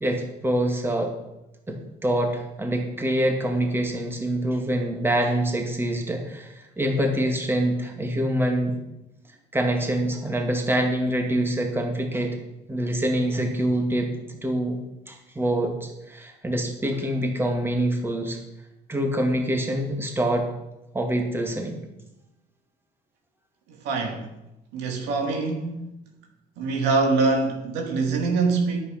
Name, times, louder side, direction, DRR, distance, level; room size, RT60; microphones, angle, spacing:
voice 1, 0.0-1.1 1.7-8.8 9.5-12.4 12.7-14.8 15.1-18.4 18.9-20.5 20.9-21.8, right 1 dB, 15° right, 2 dB, 2.3 m, -25 dB
voice 2, 23.8-24.2 24.7-25.8 26.6-28.8, right 3 dB, 90° right, 2 dB, 2.3 m, -24 dB
9.8 x 8.7 x 5.9 m, 0.92 s
cardioid pair, 110°, 17 cm